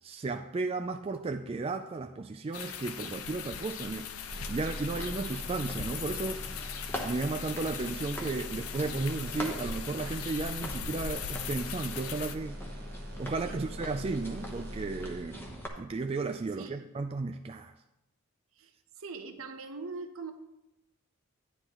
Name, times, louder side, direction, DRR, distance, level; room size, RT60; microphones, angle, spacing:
voice 1, 0.0-4.1 4.5-6.4 7.0-12.6 13.2-17.7, right 3 dB, 25° right, 5 dB, 0.3 m, -34 dB
sound 1, 2.5-12.4, left 7 dB, 85° left, 0.6 m, -40 dB
sound 2, 4.1-15.8, equal, 50° right, 1.1 m, -43 dB
sound 3, 4.7-15.7, equal, 10° left, 0.9 m, -44 dB
voice 2, 13.4-13.8 14.3-14.6 16.6-16.9 18.5-20.3, right 4 dB, 70° right, 7 dB, 0.9 m, -43 dB
10.0 x 9.7 x 3.0 m, 0.87 s
head